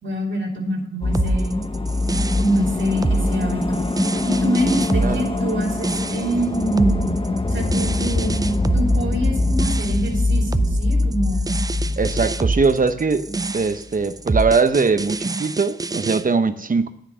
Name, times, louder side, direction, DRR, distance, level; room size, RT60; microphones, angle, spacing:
voice 1, 0.0-1.6 2.3-3.8 4.2-7.2 7.5-11.5, right 1 dB, 75° right, 2.5 m, -25 dB
sound 1, 1.0-13.4 13.7-13.8, left 2 dB, 25° left, 0.9 m, -23 dB
sound 2, 1.1-16.2, right 3 dB, 20° right, 0.3 m, -26 dB
voice 2, 12.0-13.3 13.5-16.9, right 4 dB, 40° right, 0.7 m, -20 dB
10.0 x 6.2 x 6.7 m
wide cardioid pair, 110°, 20 cm